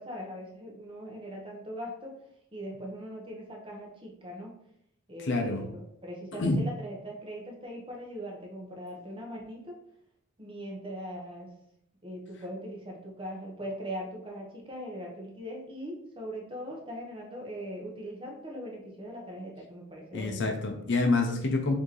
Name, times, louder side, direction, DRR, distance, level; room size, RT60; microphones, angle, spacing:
voice 1, 0.0-2.1 2.5-4.5 5.1-9.8 10.4-11.5 12.0-20.6, equal, 25° right, -1 dB, 0.9 m, -40 dB
voice 2, 5.2-5.7 6.4-6.6 20.1-21.7, left 3 dB, 55° left, 3 dB, 0.5 m, -27 dB
4.5 x 2.8 x 3.1 m, 0.71 s
head